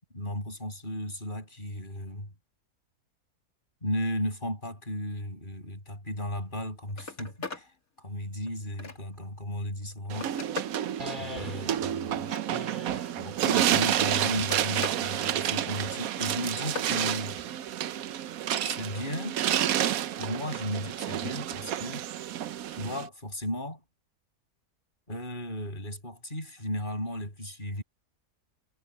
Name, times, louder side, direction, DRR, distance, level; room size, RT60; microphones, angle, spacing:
voice 1, 0.1-2.3 3.8-7.7 8.0-10.4 11.2-12.3 12.9-17.4 18.6-19.4 20.2-22.1 22.7-23.8 25.1-27.8, left 1 dB, 30° left, 7.7 m, -35 dB
Telephone, 6.5-6.6 6.9-7.7 8.2-9.3 9.8-10.8 12.1-12.9 13.9-15.0 15.4-15.8 16.2-17.0 19.4-19.8 21.2-21.3, left 3 dB, 60° left, 3.1 m, -41 dB
sound 1, 10.1-23.1, right 11 dB, 65° right, 1.1 m, -30 dB
sound 2, 11.0-11.9 12.5-13.2 14.0-14.7 15.5-16.1 17.0-17.7, left 1 dB, 30° right, 2.6 m, -43 dB
omnidirectional pair, 1.7 m